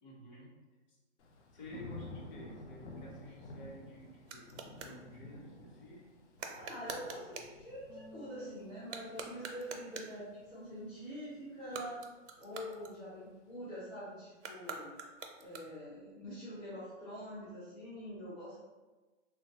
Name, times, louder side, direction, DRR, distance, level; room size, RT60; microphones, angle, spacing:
voice 1, 0.0-0.5 0.9-1.0 1.5-6.1, equal, 40° left, -3 dB, 0.9 m, -52 dB
Thunder / Rain, 1.2-12.1 12.5-13.0, left 2 dB, 70° left, 0.6 m, -52 dB
sound 1, 3.3-5.0 6.4-7.6 8.8-10.2 11.6-13.4 14.4-16.0, right 5 dB, 65° right, 0.6 m, -46 dB
voice 2, 6.5-12.0 12.4-14.9 15.4-18.6, equal, ahead, -12 dB, 0.4 m, -45 dB
Bass guitar, 7.9-14.1, right 4 dB, 85° left, 0.9 m, -61 dB
3.2 x 2.2 x 2.7 m, 1.2 s
hypercardioid pair, 140°, 37 cm